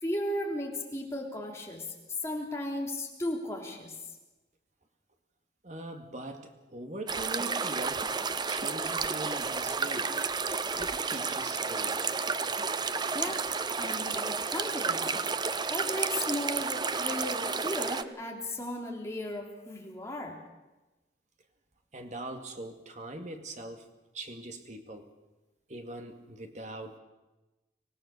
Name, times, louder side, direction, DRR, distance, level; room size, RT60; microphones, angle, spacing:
voice 1, 0.0-3.9 13.1-15.1 15.7-20.4, left 1 dB, 15° left, 0 dB, 3.4 m, -35 dB
voice 2, 5.6-8.1 8.5-10.2 10.8-12.1 21.9-23.9 24.1-25.1 25.7-27.0, right 1 dB, 45° right, 5 dB, 2.2 m, -42 dB
sound 1, 7.1-18.0, right 5 dB, 25° right, 0.6 m, -31 dB
25.0 x 17.5 x 6.7 m, 1.1 s
head